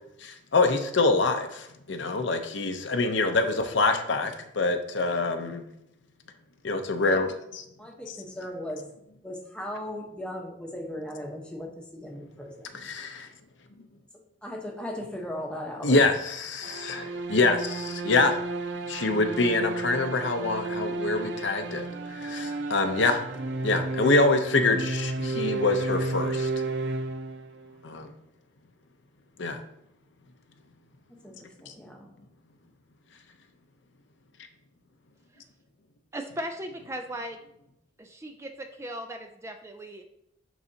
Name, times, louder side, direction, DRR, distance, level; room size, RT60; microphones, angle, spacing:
voice 1, 0.2-5.6 6.6-7.6 12.8-13.3 15.8-18.4 18.9-23.2 23.6-26.5 27.8-28.1 29.4-29.6, left 3 dB, 70° left, 6 dB, 0.7 m, -25 dB
voice 2, 7.8-8.8 9.2-12.7 14.4-16.1 31.2-32.1, left 1 dB, 5° left, -1 dB, 0.9 m, -37 dB
sound 1, 16.6-27.7, right 3 dB, 70° right, 0.5 m, -32 dB
voice 3, 36.1-37.4 38.0-40.0, right 1 dB, 15° right, 5 dB, 0.3 m, -37 dB
11.0 x 4.0 x 2.7 m, 0.80 s
head